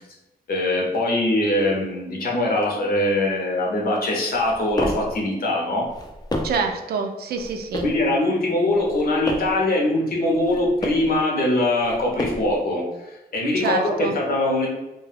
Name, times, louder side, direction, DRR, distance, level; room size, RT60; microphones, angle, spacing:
voice 1, 0.5-5.9 7.8-14.7, left 1 dB, 70° left, -2 dB, 0.8 m, -22 dB
sound 1, 4.3-5.1 5.8-6.7 7.4-8.0 8.7-9.6 10.3-11.1 11.8-12.6, left 1 dB, 25° left, 0.5 m, -30 dB
voice 2, 6.4-7.9 13.5-14.1, right 5 dB, 85° right, 4 dB, 0.4 m, -26 dB
2.3 x 2.2 x 3.2 m, 1.0 s
cardioid pair, 90°, 16 cm